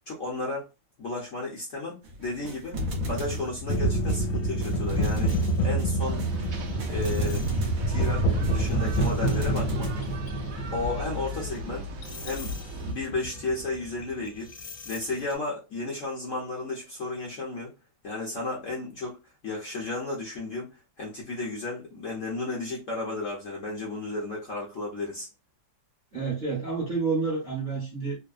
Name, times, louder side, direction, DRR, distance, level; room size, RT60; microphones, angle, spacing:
voice 1, 0.1-0.7 1.0-2.8 3.0-6.3 6.9-7.4 7.9-9.9 10.7-11.9 12.2-14.5 14.9-17.7 18.0-19.2 19.4-25.3, left 2 dB, 50° left, 1.0 m, -33 dB
sound 1, 2.0-10.2, left 1 dB, 55° right, 1.0 m, -34 dB
sound 2, 3.7-15.3, right 1 dB, 85° left, 1.6 m, -28 dB
sound 3, 6.0-12.9, right 1 dB, 85° right, 0.7 m, -36 dB
voice 2, 26.1-28.2, right 4 dB, 35° right, 0.8 m, -29 dB
3.4 x 2.1 x 2.3 m
omnidirectional pair, 2.1 m